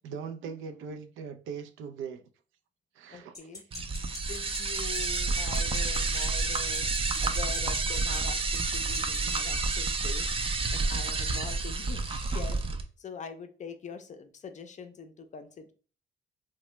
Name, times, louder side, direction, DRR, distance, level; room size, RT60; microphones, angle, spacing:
voice 1, 0.0-2.2 3.0-3.6, right 6 dB, 85° right, 0.4 m, -40 dB
voice 2, 3.1-3.6 4.2-6.9 7.2-10.3 10.7-12.6 13.0-15.7, left 6 dB, 35° left, 0.4 m, -43 dB
sound 1, 3.3-9.4, left 2 dB, 15° left, 0.8 m, -40 dB
sound 2, 3.7-12.8, right 3 dB, 30° right, 0.4 m, -29 dB
3.0 x 2.1 x 3.0 m
cardioid pair, 90°, 20 cm